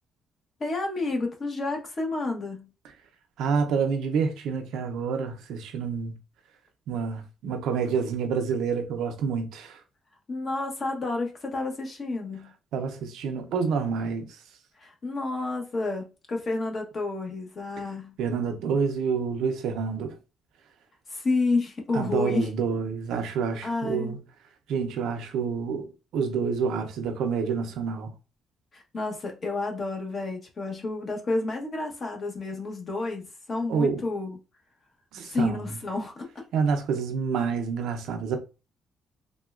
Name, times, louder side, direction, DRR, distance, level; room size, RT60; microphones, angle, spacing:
voice 1, 0.6-2.7 10.3-12.5 14.8-18.2 21.1-22.5 23.6-24.1 28.7-34.4 35.2-36.4, left 3 dB, 45° left, 1.0 m, -30 dB
voice 2, 3.4-6.1 6.9-9.8 12.7-14.4 18.2-20.2 21.9-24.2 24.7-28.1 33.7-34.0 35.1-35.6 36.5-38.4, right 5 dB, 85° right, 0.6 m, -28 dB
3.5 x 2.2 x 2.4 m
cardioid pair, 90°, 0 cm